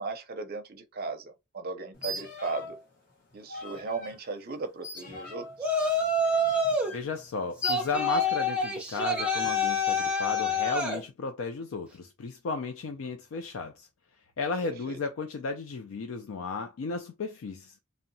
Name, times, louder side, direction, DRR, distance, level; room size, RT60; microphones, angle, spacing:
voice 1, 0.0-2.8 3.3-5.7 14.6-15.0, right 4 dB, 45° right, 0.5 m, -37 dB
sound 1, 1.9-2.8 3.1-4.2 4.8-8.4 8.9-9.7, left 4 dB, 40° left, 1.0 m, -39 dB
Yell, 5.6-6.9 7.6-11.0, left 2 dB, 5° right, 0.6 m, -27 dB
voice 2, 6.9-13.9 14.4-17.7, left 4 dB, 70° left, 0.4 m, -34 dB
2.7 x 2.1 x 2.6 m
head